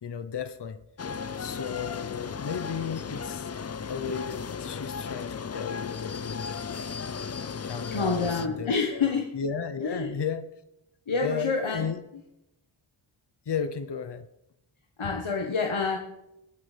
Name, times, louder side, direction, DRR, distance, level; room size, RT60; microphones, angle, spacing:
voice 1, 0.0-0.8 1.4-3.5 3.9-6.8 7.6-10.5 11.2-12.0 13.5-14.3, left 6 dB, 55° left, 10 dB, 0.8 m, -34 dB
sound 1, 1.0-8.5, left 6 dB, 35° left, 0.4 m, -35 dB
voice 2, 7.9-9.3 9.8-10.1 11.1-11.8 15.0-16.0, left 4 dB, 75° left, 1 dB, 1.4 m, -27 dB
22.5 x 8.0 x 3.4 m, 0.85 s
wide cardioid pair, 80°, 49 cm